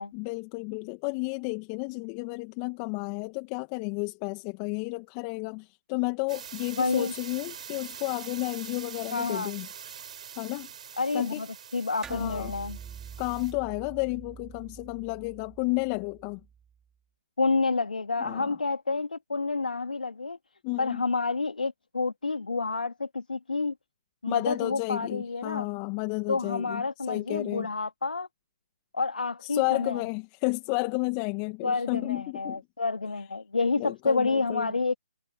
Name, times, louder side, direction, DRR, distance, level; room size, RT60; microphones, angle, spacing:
voice 1, 0.1-9.7 10.4-10.7 11.1-11.4 12.1-12.5 13.2-16.4 18.2-18.5 20.6-21.0 24.3-27.7 29.4-32.6 33.8-34.7, left 30 dB, 25° left, 2.1 m, -32 dB
sound 1, 6.3-13.5, right 8 dB, 50° right, 7.8 m, -44 dB
voice 2, 6.8-7.1 9.1-9.5 11.0-12.8 17.4-20.4 20.8-23.7 24.2-25.7 26.3-28.3 28.9-30.0 31.6-35.0, left 4 dB, 80° left, 2.2 m, -29 dB
sound 2, 12.0-16.8, right 7 dB, 10° right, 3.2 m, -46 dB
figure-of-eight pair, 145°, 5 cm